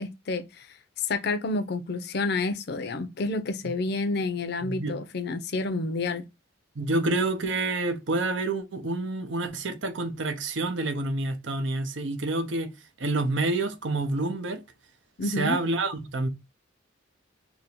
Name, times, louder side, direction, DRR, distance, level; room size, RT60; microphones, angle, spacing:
voice 1, 0.0-6.2 15.2-15.6, left 3 dB, 55° left, 0.5 m, -29 dB
voice 2, 4.6-4.9 6.8-12.7 13.0-14.6 15.4-16.3, right 2 dB, 65° right, 0.7 m, -28 dB
2.8 x 2.7 x 4.2 m
head